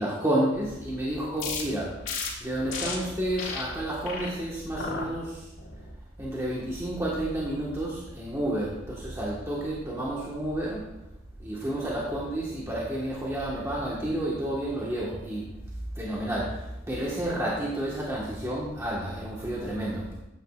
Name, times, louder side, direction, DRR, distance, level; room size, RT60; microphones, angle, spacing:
voice 1, 0.0-1.9 2.4-5.5 6.2-10.8 11.4-15.5 16.0-20.2, right 1 dB, 15° right, -6 dB, 1.4 m, -30 dB
sound 1, 1.4-1.6 2.0-2.3 2.7-2.9 3.4-3.6 4.0-4.3 4.7-5.1 5.6-5.9, left 5 dB, 85° left, 2.0 m, -33 dB
12.0 x 9.2 x 2.4 m, 0.91 s
head